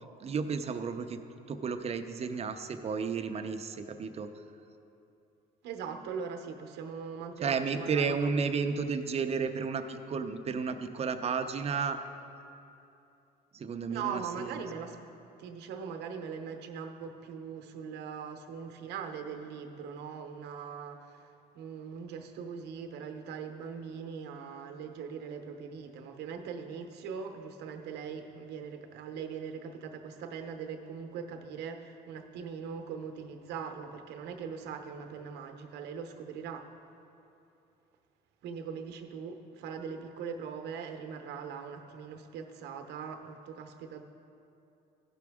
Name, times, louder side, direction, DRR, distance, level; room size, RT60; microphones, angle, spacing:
voice 1, 0.2-1.2 1.5-4.3 7.4-12.0 13.5-14.6, right 5 dB, 40° right, 8 dB, 0.6 m, -32 dB
voice 2, 5.6-8.5 13.9-15.0 15.4-36.7 38.4-44.0, right 6 dB, 80° right, 5 dB, 0.8 m, -41 dB
15.0 x 6.0 x 3.6 m, 2.8 s
cardioid pair, 110°, 17 cm